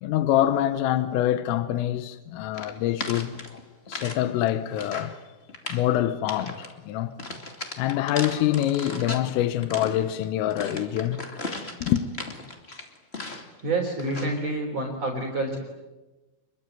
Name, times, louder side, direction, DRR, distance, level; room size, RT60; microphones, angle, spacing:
voice 1, 0.0-3.3 3.9-5.1 5.7-7.1 7.8-11.2 11.8-12.0, left 12 dB, 80° left, 3.7 m, -25 dB
sound 1, 2.5-4.2 4.5-5.2 5.5-5.9 6.3-6.7 7.2-9.3 9.6-13.6 14.0-14.4, left 2 dB, 40° left, 0.8 m, -37 dB
voice 2, 8.0-8.7 13.6-15.6, right 2 dB, 35° right, 4.3 m, -29 dB
27.5 x 23.0 x 9.4 m
omnidirectional pair, 6.0 m